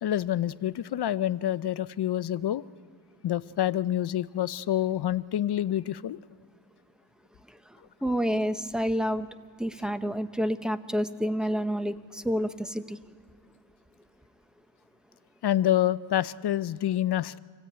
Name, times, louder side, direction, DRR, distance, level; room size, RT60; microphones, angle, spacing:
voice 1, 0.0-2.6 3.2-6.2 15.4-17.4, left 12 dB, 60° left, 16 dB, 0.5 m, -27 dB
voice 2, 8.0-9.3 9.6-13.0, equal, ahead, 10 dB, 0.7 m, -28 dB
25.5 x 17.0 x 8.7 m, 2.2 s
wide cardioid pair, 125°, 46 cm